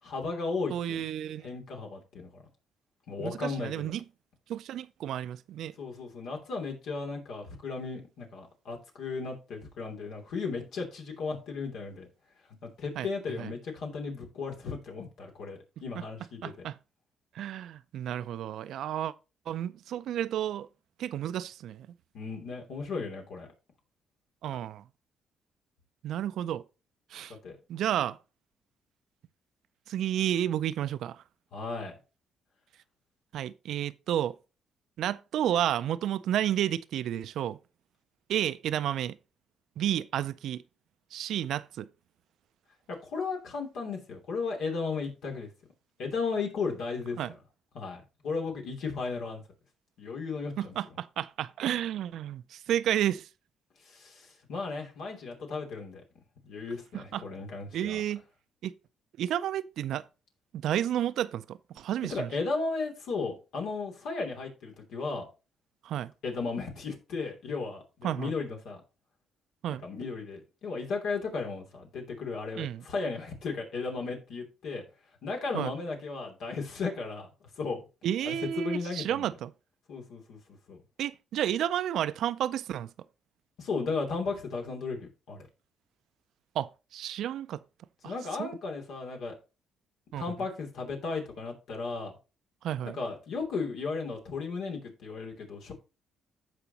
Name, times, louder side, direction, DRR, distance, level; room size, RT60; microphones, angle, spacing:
voice 1, 0.0-1.0 1.4-2.3 3.1-3.9 5.8-12.1 12.6-16.7 22.1-23.5 27.4-27.6 31.5-31.9 43.0-45.5 46.0-47.2 47.7-49.4 50.0-50.7 53.8-56.0 56.4-58.0 62.1-65.3 66.2-68.8 69.8-74.8 75.2-77.8 78.2-79.3 79.9-80.4 80.7-80.8 83.6-85.5 88.0-89.3 90.1-92.1 92.8-95.7, left 4 dB, 80° left, 2.9 m, -35 dB
voice 2, 0.7-1.5 3.2-4.0 4.5-5.7 13.0-13.1 13.4-13.5 16.4-16.8 17.3-19.1 19.5-20.7 21.0-21.9 24.4-24.8 26.0-26.6 27.1-27.3 27.7-28.2 29.9-31.2 33.3-34.4 35.0-37.6 38.3-39.2 39.8-40.6 41.1-41.9 47.2-47.3 50.6-53.3 56.9-57.2 57.7-58.2 58.6-58.7 59.2-60.1 60.5-62.3 65.8-66.1 68.0-68.3 69.6-69.8 72.6-72.9 75.5-75.7 78.0-79.5 81.0-82.9 86.5-87.6 88.0-88.1 88.4-88.5 90.1-90.2 92.6-93.0, right 11 dB, 75° right, 0.4 m, -31 dB
15.0 x 5.0 x 2.9 m
cardioid pair, 90°, 0 cm